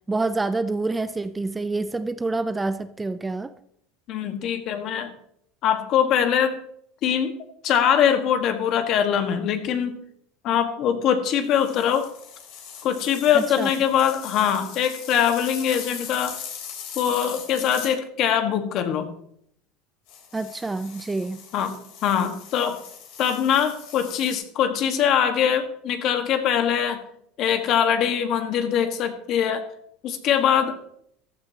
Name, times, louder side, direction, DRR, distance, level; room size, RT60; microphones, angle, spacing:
voice 1, 0.1-3.5 13.3-13.7 20.3-21.4, right 3 dB, 10° right, 0.4 m, -27 dB
voice 2, 4.1-5.1 5.6-6.6 7.0-7.4 7.6-10.0 10.4-12.1 12.8-16.4 17.0-19.1 21.5-21.7 22.0-22.8 23.2-27.0 27.4-29.6 30.0-30.8, left 9 dB, 50° left, 1.5 m, -22 dB
sound 1, 11.4-17.9 20.1-24.3, left 7 dB, 70° left, 3.5 m, -40 dB
14.5 x 12.5 x 2.9 m
supercardioid pair, 125°, 0 cm